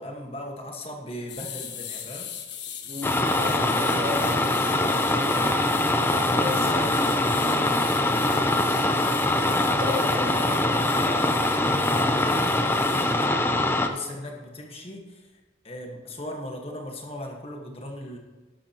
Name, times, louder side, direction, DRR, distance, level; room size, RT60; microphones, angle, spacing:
voice 1, 0.0-2.3 3.7-5.8 6.4-8.9 11.0-13.2 13.9-15.3 15.6-18.2, left 1 dB, 30° left, 1 dB, 1.5 m, -38 dB
sound 1, 1.3-13.3, left 9 dB, 65° left, 1.4 m, -39 dB
voice 2, 2.9-4.3 6.3-6.9 9.7-10.5 12.0-12.1, left 2 dB, 45° right, 0 dB, 2.1 m, -33 dB
sound 2, 3.0-13.9, left 1 dB, 10° left, 0.6 m, -23 dB
12.5 x 12.0 x 3.0 m, 1.3 s
head